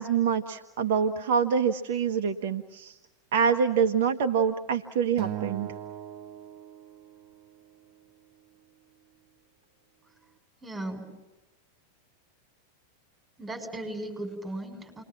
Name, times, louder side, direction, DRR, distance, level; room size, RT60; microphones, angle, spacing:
voice 1, 0.0-3.0 3.3-5.7, right 6 dB, 55° right, 6 dB, 1.3 m, -26 dB
Acoustic guitar, 5.2-7.6, right 12 dB, 40° right, 1.0 m, -39 dB
voice 2, 10.6-11.1 13.4-15.0, right 1 dB, 10° right, 4 dB, 7.0 m, -36 dB
30.0 x 22.0 x 7.5 m, 1.1 s
figure-of-eight pair, 90°, 0 cm